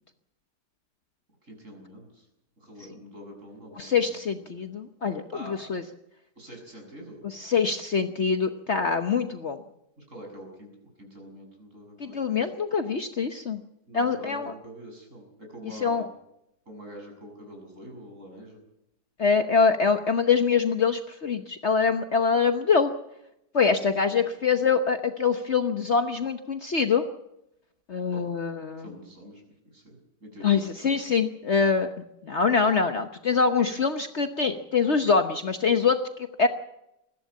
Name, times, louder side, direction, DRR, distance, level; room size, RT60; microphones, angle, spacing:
voice 1, 1.4-2.3 2.6-4.7 5.3-5.6 6.4-7.2 10.0-10.7 11.0-12.5 13.9-16.1 16.7-18.6 23.5-24.3 28.1-28.2 28.8-31.1, equal, 45° right, 2 dB, 7.3 m, -45 dB
voice 2, 3.8-5.2 5.7-5.8 7.2-9.6 12.0-13.6 13.9-14.5 15.8-16.1 19.2-22.9 23.5-27.0 27.9-28.9 30.4-31.9 32.2-36.5, left 5 dB, 45° left, 8 dB, 1.2 m, -24 dB
21.0 x 15.5 x 8.4 m, 0.84 s
omnidirectional pair, 1.8 m